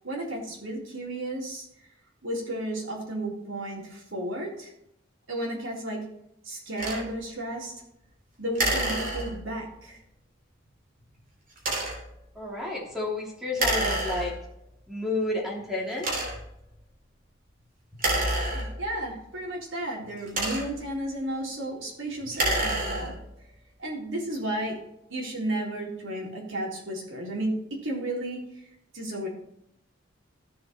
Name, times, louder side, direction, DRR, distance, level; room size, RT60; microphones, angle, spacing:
voice 1, 0.0-1.7 2.2-4.7 5.3-6.0 6.4-7.7 8.4-10.0 18.5-23.1 23.8-24.8 25.1-28.4 28.9-29.3, right 1 dB, 80° right, -3 dB, 3.8 m, -33 dB
sound 1, 6.8-7.1 8.6-9.6 11.6-12.1 13.6-14.6 15.2-15.3 16.0-16.6 17.9-19.1 20.0-20.9 22.2-23.3, right 1 dB, 45° right, 2.9 m, -28 dB
voice 2, 12.3-14.3 14.9-16.1, left 2 dB, ahead, -4 dB, 3.3 m, -30 dB
14.5 x 7.0 x 3.1 m, 0.79 s
head